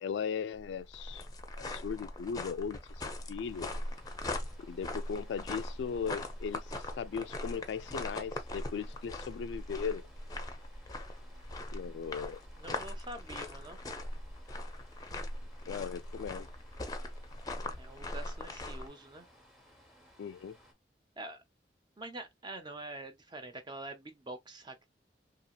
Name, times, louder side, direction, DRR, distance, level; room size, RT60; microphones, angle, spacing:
voice 1, 0.0-1.2 1.7-2.8 3.3-3.7 4.7-10.1 11.7-12.4 15.7-16.5 20.2-20.6, left 6 dB, 85° left, 0.3 m, -37 dB
sound 1, 0.5-18.9, left 1 dB, 20° left, 0.5 m, -41 dB
sound 2, 3.4-20.7, equal, ahead, 0.9 m, -61 dB
voice 2, 12.6-13.8 17.8-19.3 21.2-21.4 22.0-24.8, right 2 dB, 25° right, 0.6 m, -45 dB
2.8 x 2.8 x 2.3 m
head